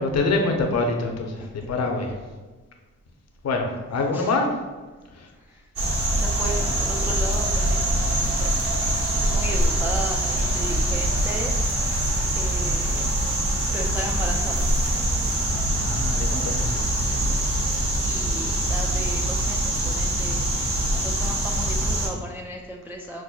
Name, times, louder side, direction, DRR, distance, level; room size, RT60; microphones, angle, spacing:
voice 1, 0.0-2.1 3.4-4.5 5.2-5.3 15.3-16.8, left 3 dB, 55° left, 2 dB, 0.7 m, -25 dB
voice 2, 5.3-5.7 6.2-11.5 12.4-13.4 13.7-14.8 18.0-23.2, right 1 dB, 5° right, -1 dB, 0.3 m, -36 dB
sound 1, 5.8-22.1, right 1 dB, 45° right, 0.9 m, -24 dB
5.9 x 2.1 x 2.3 m, 1.3 s
cardioid pair, 70°, 31 cm